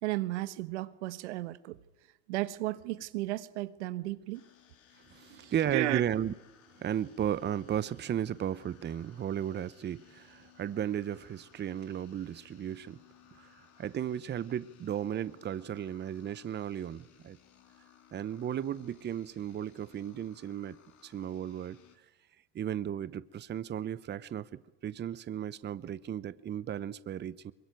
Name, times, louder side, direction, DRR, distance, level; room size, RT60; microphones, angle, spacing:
voice 1, 0.0-1.8 2.3-4.4 5.3-6.0, right 17 dB, 85° right, 1.3 m, -34 dB
sound 1, 4.3-22.0, left 10 dB, 60° left, 3.8 m, -61 dB
voice 2, 5.1-6.3 6.8-13.0 13.4-17.4 18.1-21.8 22.5-27.5, right 10 dB, 30° right, 0.9 m, -35 dB
23.5 x 22.0 x 9.2 m
supercardioid pair, 95°, 34 cm